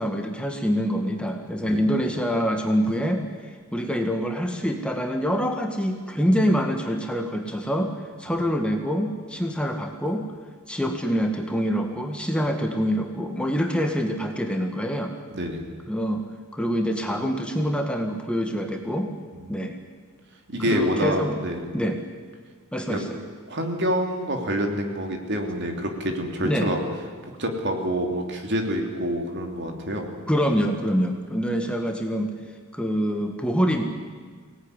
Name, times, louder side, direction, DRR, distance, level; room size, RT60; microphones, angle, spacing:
voice 1, 0.0-7.9 8.2-10.2 10.7-15.1 15.9-16.2 16.5-19.1 19.5-19.8 20.7-21.4 21.7-22.0 22.7-23.2 26.4-26.7 30.3-32.3 32.7-33.8, equal, 5° left, 3 dB, 1.7 m, -25 dB
voice 2, 15.3-15.6 19.4-19.6 20.5-21.7 22.9-23.0 23.5-26.8 27.4-30.1, equal, 55° right, 3 dB, 3.3 m, -27 dB
24.0 x 18.5 x 9.9 m, 1.5 s
head